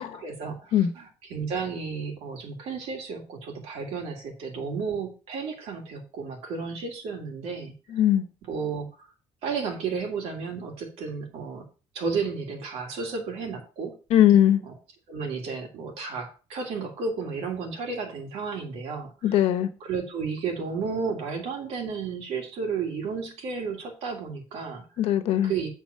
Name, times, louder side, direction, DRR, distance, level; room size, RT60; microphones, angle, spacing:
voice 1, 0.0-7.7 8.5-8.9 9.4-11.7 11.9-14.0 14.6-14.7 15.1-19.4 19.8-25.1 25.4-25.7, right 5 dB, 85° right, 2.4 m, -33 dB
voice 2, 7.9-8.2 14.1-14.6 19.2-19.7 25.0-25.5, left 11 dB, 80° left, 1.0 m, -20 dB
8.6 x 4.2 x 5.5 m
cardioid pair, 160°, 10 cm